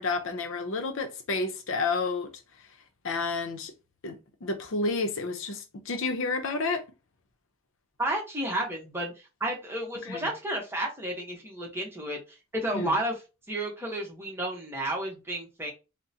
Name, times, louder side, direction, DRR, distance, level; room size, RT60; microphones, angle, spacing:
voice 1, 0.0-2.3 3.0-3.7 4.0-6.9 10.1-10.3 12.7-12.9, left 3 dB, 70° left, 0.6 m, -30 dB
voice 2, 8.0-12.2 12.5-13.2 13.5-15.7, right 1 dB, 10° right, 0.9 m, -31 dB
3.7 x 2.1 x 2.7 m
head